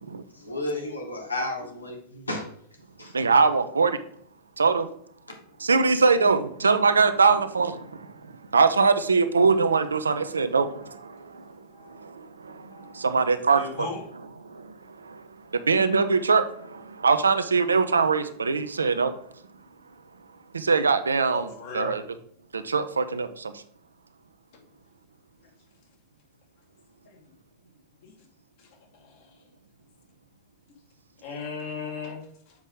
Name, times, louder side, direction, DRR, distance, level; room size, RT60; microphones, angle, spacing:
voice 1, 0.0-2.4 3.0-3.1, left 2 dB, 80° left, 1 dB, 1.3 m, -33 dB
voice 2, 3.1-4.0 4.6-4.9 5.6-11.5 11.8-13.9 14.4-15.2 15.5-19.2 20.5-21.5 21.7-22.0 22.5-23.6, right 4 dB, 75° right, 10 dB, 0.5 m, -23 dB
voice 3, 12.7-13.1 13.6-14.0 21.3-22.0 27.1-27.3 28.0-28.1 28.6-29.3 31.2-32.5, left 5 dB, 50° left, 1 dB, 2.0 m, -38 dB
7.0 x 5.0 x 3.8 m, 0.65 s
figure-of-eight pair, 90°, 0 cm